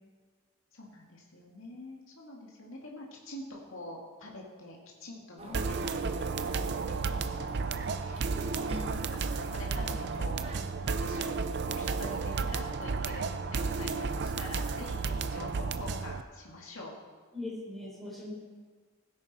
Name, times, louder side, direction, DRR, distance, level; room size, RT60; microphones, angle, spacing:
voice 1, 0.7-11.4 11.7-16.9, left 1 dB, 70° left, -2 dB, 2.1 m, -46 dB
sound 1, 5.4-10.6, right 2 dB, 25° right, 0.9 m, -47 dB
sound 2, 5.5-16.2, right 4 dB, 50° right, 0.5 m, -33 dB
voice 2, 8.4-8.8 17.3-18.3, left 2 dB, ahead, -5 dB, 4.1 m, -40 dB
16.5 x 10.0 x 4.2 m, 1.5 s
head